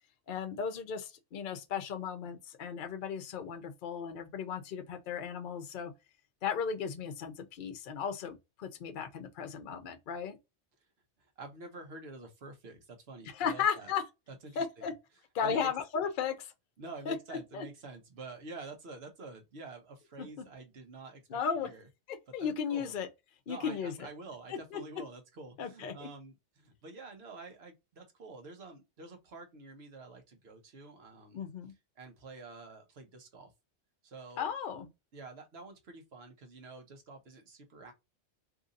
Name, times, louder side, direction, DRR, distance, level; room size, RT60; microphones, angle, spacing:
voice 1, 0.3-5.9 6.4-10.4 13.3-14.0 14.6-14.9 15.3-16.5 17.1-17.2 17.5-17.7 20.2-20.4 21.3-21.7 22.1-23.1 23.5-24.1 24.5-24.8 25.6-26.1 31.3-31.7 34.4-34.9, left 7 dB, 55° left, 0.7 m, -35 dB
voice 2, 11.4-13.9 14.3-14.9 15.4-15.7 16.8-21.9 22.3-22.9 23.5-31.5 32.0-33.5 34.0-34.5 35.1-37.9, right 3 dB, 60° right, 1.1 m, -48 dB
2.8 x 2.6 x 3.7 m
omnidirectional pair, 1.2 m